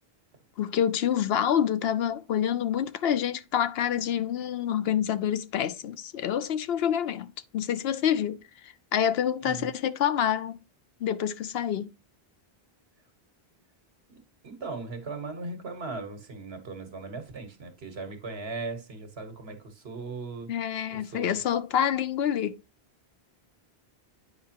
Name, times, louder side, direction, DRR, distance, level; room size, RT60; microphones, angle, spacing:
voice 1, 0.6-10.6 11.0-11.9 20.5-22.6, left 9 dB, 75° left, 0.8 m, -27 dB
voice 2, 14.4-20.5 20.9-21.4, right 3 dB, 75° right, 1.7 m, -38 dB
9.4 x 5.1 x 2.9 m
omnidirectional pair, 1.0 m